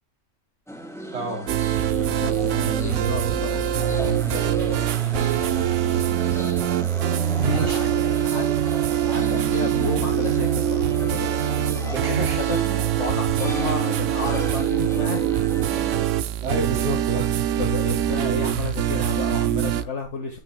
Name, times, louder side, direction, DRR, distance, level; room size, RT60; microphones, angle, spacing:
sound 1, 0.7-16.1, equal, ahead, 2.3 m, -35 dB
voice 1, 1.1-1.5 7.3-7.9 11.9-12.4 16.4-17.6, right 1 dB, 65° right, 3.7 m, -29 dB
sound 2, 1.5-19.9, right 11 dB, 85° right, 1.0 m, -23 dB
voice 2, 2.1-6.2 7.5-8.5 8.9-15.3 17.6-20.4, left 3 dB, 70° left, 2.0 m, -32 dB
17.0 x 5.9 x 2.2 m
omnidirectional pair, 1.2 m